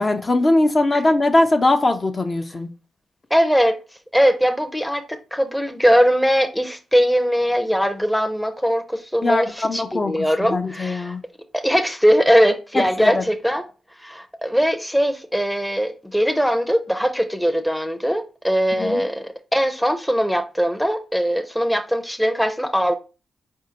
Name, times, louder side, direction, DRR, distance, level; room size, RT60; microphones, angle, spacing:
voice 1, 0.0-2.7 9.2-11.2 12.7-13.2 18.7-19.0, left 2 dB, 40° left, 0.7 m, -20 dB
voice 2, 3.3-3.8 4.1-11.2 11.5-13.6 14.0-22.9, equal, 5° left, 0.6 m, -20 dB
4.4 x 3.6 x 2.8 m
cardioid pair, 55°, 0 cm